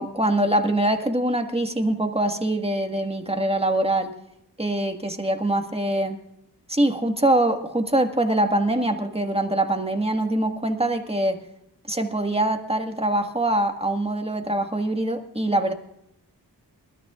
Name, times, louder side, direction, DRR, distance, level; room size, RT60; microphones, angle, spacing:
voice 1, 0.0-4.1 4.6-6.2 6.7-11.4 11.9-15.7, right 1 dB, 15° right, 5 dB, 1.6 m, -23 dB
27.5 x 13.0 x 2.4 m, 0.81 s
wide cardioid pair, 85°, 42 cm